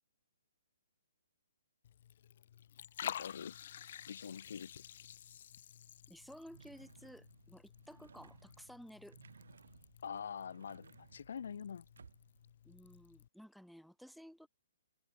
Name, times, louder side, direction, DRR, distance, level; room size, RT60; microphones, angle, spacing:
Liquid, 1.8-13.3, left 10 dB, 45° left, 1.2 m, -51 dB
voice 1, 3.0-3.6 4.1-4.8 10.0-11.9, left 7 dB, 60° left, 0.5 m, -45 dB
voice 2, 6.1-9.2 12.6-14.5, equal, ahead, 1.0 m, -55 dB
sound 1, 6.5-12.5, right 6 dB, 80° right, 4.2 m, -62 dB
hypercardioid pair, 165°, 0 cm